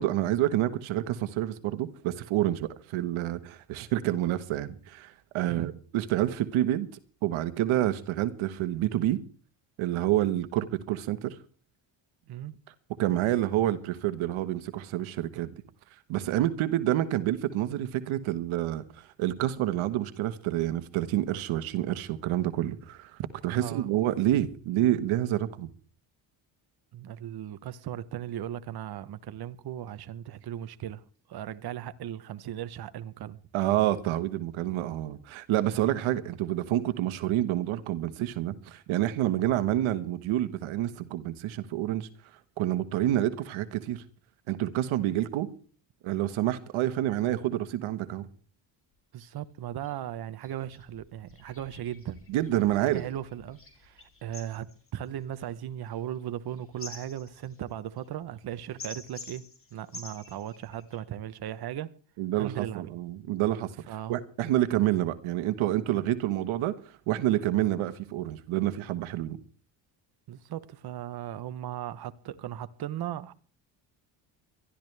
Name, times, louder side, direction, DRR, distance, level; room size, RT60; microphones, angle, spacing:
voice 1, 0.0-6.9 7.2-9.2 9.8-11.4 13.0-15.5 16.1-23.1 23.4-25.7 33.5-42.1 42.6-44.0 44.5-45.5 46.0-48.3 52.3-53.0 62.2-63.7 64.1-66.7 67.1-69.4, right 13 dB, 85° right, 1.4 m, -28 dB
voice 2, 23.5-23.9 26.9-31.0 31.3-33.4 49.1-52.2 52.8-54.7 54.9-59.4 59.7-61.9 62.4-63.0 63.9-64.2 70.3-73.3, right 11 dB, 50° right, 1.0 m, -37 dB
sound 1, 48.9-49.0 49.2-49.3 49.8-50.0 50.4-61.0, left 3 dB, 25° left, 4.3 m, -49 dB
23.0 x 13.0 x 3.4 m
cardioid pair, 105°, 47 cm